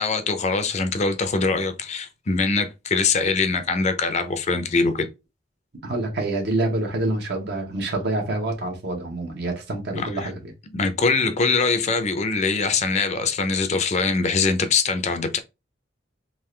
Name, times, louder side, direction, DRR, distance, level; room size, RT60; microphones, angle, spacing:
voice 1, 0.0-5.1 9.9-10.3 10.7-15.4, left 4 dB, 40° left, 0.5 m, -23 dB
voice 2, 5.8-10.5, right 2 dB, 65° right, 1.1 m, -27 dB
3.7 x 2.5 x 3.2 m
head